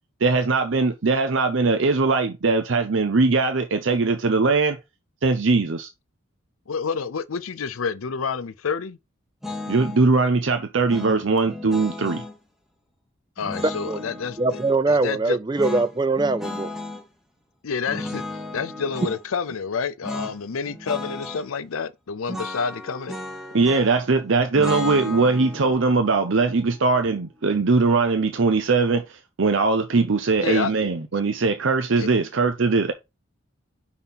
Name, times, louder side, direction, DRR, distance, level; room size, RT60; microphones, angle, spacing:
voice 1, 0.2-4.8 5.2-5.9 9.7-12.2 23.5-32.9, right 3 dB, 65° right, 0.7 m, -21 dB
voice 2, 6.7-9.0 13.4-14.6 14.9-15.4 17.6-18.2 18.5-23.2 30.4-30.7 32.0-32.1, left 5 dB, 85° left, 0.6 m, -29 dB
sound 1, 9.4-10.1 10.9-12.4 13.4-14.8 15.5-17.0 17.9-19.2 20.0-20.4 20.6-21.5 22.3-24.0 24.5-27.6, left 2 dB, ahead, 1.1 m, -34 dB
voice 3, 14.4-16.7, right 3 dB, 20° right, 0.4 m, -22 dB
5.7 x 4.0 x 4.0 m
head